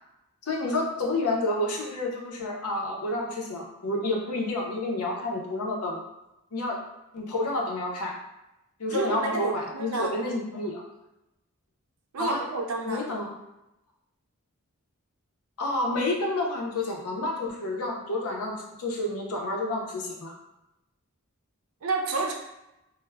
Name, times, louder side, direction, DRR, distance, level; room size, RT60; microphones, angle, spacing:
voice 1, 0.5-6.0 6.5-6.8 7.1-8.1 8.8-10.8 12.2-12.4 12.8-13.3 15.6-18.5 18.8-20.3, left 2 dB, 80° left, -1 dB, 0.6 m, -29 dB
voice 2, 8.9-10.1 12.1-13.0 21.8-22.3, right 3 dB, 65° right, 1 dB, 0.5 m, -29 dB
2.3 x 2.0 x 3.2 m, 0.92 s
head